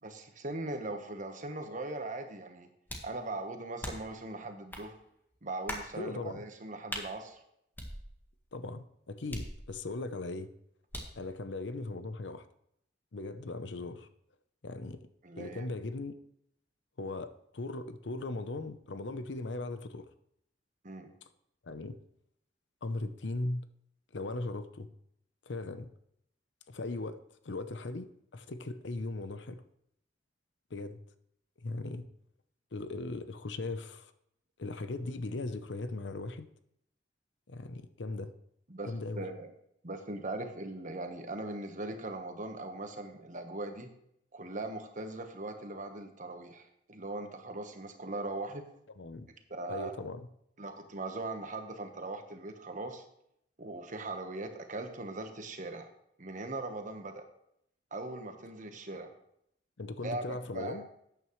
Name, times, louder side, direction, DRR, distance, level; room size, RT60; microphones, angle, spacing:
voice 1, 0.0-2.7 3.0-5.0 5.4-7.4 15.2-15.7 20.8-21.1 38.7-38.9 39.2-39.5 39.8-43.9 44.3-48.6 49.5-49.9 50.6-53.0 53.6-55.9 56.2-57.2 57.9-59.1 60.0-60.8, right 2 dB, 45° right, 6 dB, 1.3 m, -40 dB
sound 1, 2.9-3.2 3.8-4.2 4.7-4.9 5.7-5.9 6.9-7.1 7.8-8.4 9.3-10.0 10.9-11.2, left 1 dB, 10° left, 1.6 m, -41 dB
voice 2, 5.9-6.4 8.5-10.5 11.2-12.4 13.1-14.1 14.6-15.0 15.4-16.1 17.0-20.1 21.6-22.0 22.8-23.7 24.1-24.9 25.5-25.9 26.7-27.2 27.4-29.6 30.7-31.0 31.6-32.1 32.7-34.1 34.6-36.5 37.5-38.3 38.9-39.3 49.0-49.3 49.7-50.3 59.8-60.8, left 2 dB, 80° left, 11 dB, 0.8 m, -38 dB
12.5 x 9.2 x 3.2 m, 0.74 s
head